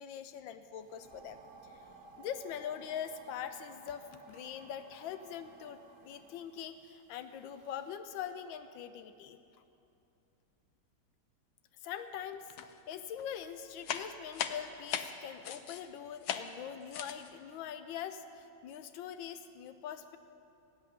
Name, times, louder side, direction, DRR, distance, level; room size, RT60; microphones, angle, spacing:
voice 1, 0.0-1.4 1.6-1.8 2.2-9.4 11.8-20.2, left 9 dB, 80° left, 10 dB, 1.4 m, -43 dB
sound 1, 0.8-7.9, right 3 dB, 45° right, 1.4 m, -57 dB
sound 2, 12.6-12.9 13.2-15.9 16.2-16.6 16.9-17.3, left 8 dB, 65° left, 1.1 m, -38 dB
14.0 x 7.8 x 10.0 m, 2.8 s
omnidirectional pair, 2.1 m